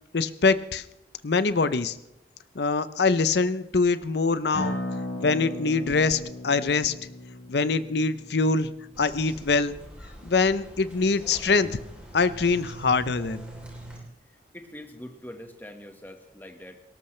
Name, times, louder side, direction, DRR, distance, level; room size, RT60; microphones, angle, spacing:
voice 1, 0.1-0.8 1.2-2.0 2.6-4.8 5.2-6.9 7.5-8.7 9.0-9.8 10.2-11.8 12.1-13.4, left 4 dB, 65° left, 14 dB, 0.7 m, -24 dB
Acoustic guitar, 4.5-9.7, left 1 dB, 85° left, 5.1 m, -36 dB
Bird vocalization bird call bird song, 8.9-14.0, right 1 dB, 5° right, 3.4 m, -43 dB
voice 2, 14.5-16.8, left 1 dB, 10° left, 4 dB, 1.4 m, -43 dB
18.5 x 17.5 x 3.3 m, 0.87 s
head